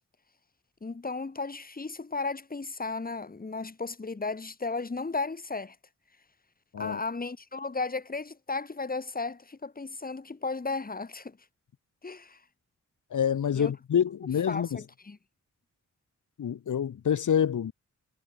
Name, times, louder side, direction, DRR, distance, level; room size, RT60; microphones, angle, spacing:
voice 1, 0.8-5.8 6.8-11.4 12.0-12.4 13.5-13.7 14.5-15.2, left 3 dB, 30° left, 3.7 m, -34 dB
voice 2, 13.1-14.8 16.4-17.7, left 8 dB, 85° left, 3.6 m, -27 dB
wide cardioid pair, 95°, 30 cm